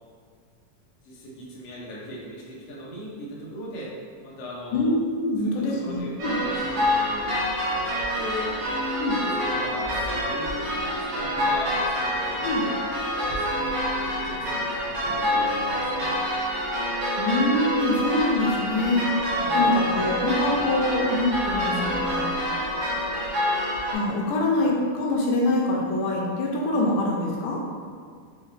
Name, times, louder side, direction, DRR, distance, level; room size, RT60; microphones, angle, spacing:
voice 1, 1.0-3.9 4.2-4.9 5.4-8.6 9.4-12.7 13.1-16.2 19.4-19.7, equal, 65° left, -6 dB, 1.7 m, -39 dB
voice 2, 4.7-6.4 9.0-9.2 12.4-12.6 17.2-19.1 19.5-22.2 23.9-27.6, left 1 dB, 85° left, -2 dB, 2.1 m, -24 dB
sound 1, 6.2-23.9, equal, 65° right, 1.8 m, -26 dB
5.7 x 2.8 x 3.1 m, 2.1 s
omnidirectional pair, 3.6 m